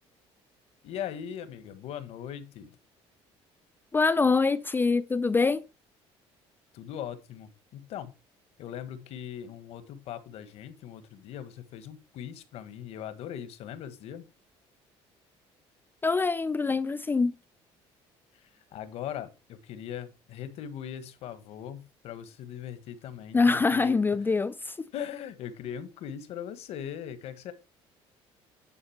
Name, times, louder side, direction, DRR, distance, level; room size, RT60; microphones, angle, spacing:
voice 1, 0.8-2.8 6.7-8.1 8.6-14.3 18.3-24.0 24.9-27.5, left 9 dB, 70° left, 1.5 m, -40 dB
voice 2, 3.9-5.6 16.0-17.3 23.3-24.8, left 4 dB, 20° left, 0.5 m, -24 dB
10.0 x 4.1 x 5.7 m
cardioid pair, 110°, 11 cm